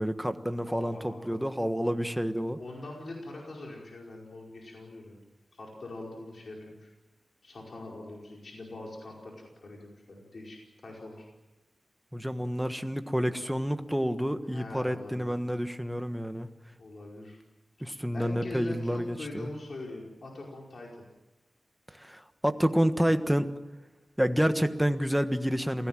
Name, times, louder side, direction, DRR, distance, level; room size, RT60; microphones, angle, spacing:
voice 1, 0.0-2.6 12.1-16.5 17.8-19.5 21.9-23.5 24.2-25.9, equal, 5° right, 8 dB, 1.4 m, -29 dB
voice 2, 0.6-1.3 2.6-5.2 5.5-6.9 7.4-11.3 14.5-15.3 16.8-17.4 18.1-21.1, left 2 dB, 55° left, -1 dB, 5.0 m, -43 dB
28.0 x 17.5 x 7.6 m, 1.1 s
wide cardioid pair, 130°, 0 cm